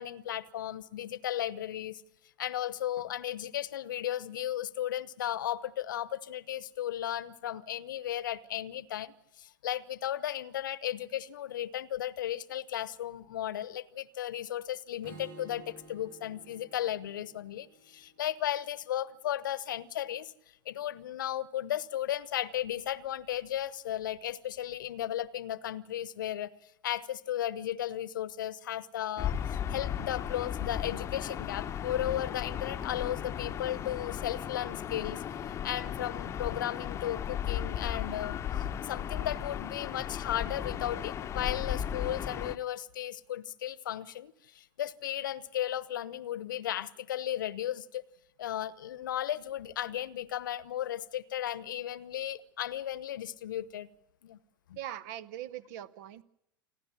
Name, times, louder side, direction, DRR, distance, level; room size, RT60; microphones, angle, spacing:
voice 1, 0.0-2.0 2.4-20.3 20.6-29.3 29.7-48.0 48.4-53.9 54.2-54.4 54.7-54.8, left 12 dB, 60° left, 19 dB, 1.1 m, -35 dB
Strum, 15.0-19.2, right 1 dB, 75° right, 5.0 m, -53 dB
Gull seagull / Ocean, 29.2-42.6, left 9 dB, 25° left, 1.0 m, -36 dB
voice 2, 54.7-56.2, right 12 dB, 50° right, 17 dB, 1.2 m, -41 dB
28.5 x 11.0 x 10.0 m, 0.80 s
figure-of-eight pair, 95°, 12 cm